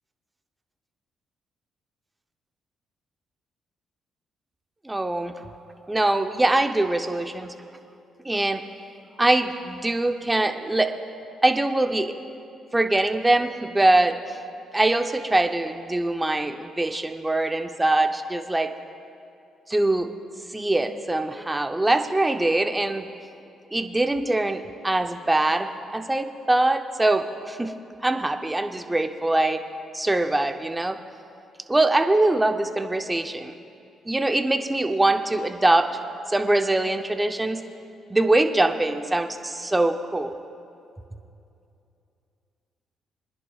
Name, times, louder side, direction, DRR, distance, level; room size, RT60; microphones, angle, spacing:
voice 1, 4.8-5.3 5.9-7.5 8.2-8.6 9.2-10.9 11.4-12.2 12.7-14.2 14.7-18.7 19.7-20.1 20.5-23.1 23.7-27.7 28.0-29.6 29.9-31.0 31.7-33.5 34.1-35.9 36.3-37.6 38.1-40.4, right 2 dB, 15° right, 6 dB, 0.7 m, -23 dB
25.5 x 10.5 x 2.4 m, 2.6 s
cardioid pair, 90°, 0 cm